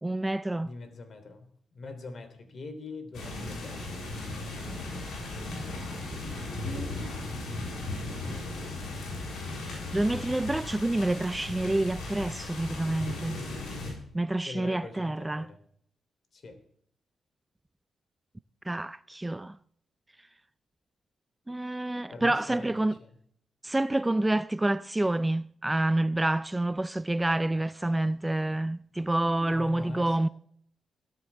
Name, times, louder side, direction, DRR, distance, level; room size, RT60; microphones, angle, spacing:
voice 1, 0.0-0.7 6.6-7.0 9.9-13.4 14.1-15.5 18.7-19.6 21.5-23.0 23.6-30.3, right 1 dB, 15° right, 0.4 m, -28 dB
voice 2, 0.6-4.1 14.4-15.6 16.3-16.6 22.1-23.1 29.3-30.3, left 3 dB, 55° left, 3.3 m, -43 dB
sound 1, 3.1-13.9, left 2 dB, 80° left, 7.1 m, -37 dB
16.5 x 13.5 x 3.5 m
cardioid pair, 70°, 0 cm